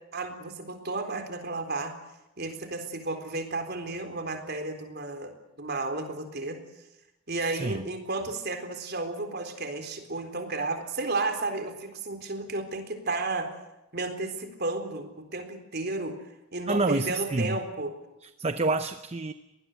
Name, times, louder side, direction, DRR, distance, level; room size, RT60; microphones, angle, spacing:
voice 1, 0.1-1.9 2.4-6.6 7.3-13.5 13.9-16.2 16.5-17.9, right 2 dB, 45° right, 6 dB, 4.0 m, -33 dB
voice 2, 7.5-7.9 16.7-17.6 18.2-19.3, right 2 dB, 30° right, 10 dB, 0.7 m, -28 dB
23.5 x 20.0 x 7.9 m, 0.94 s
head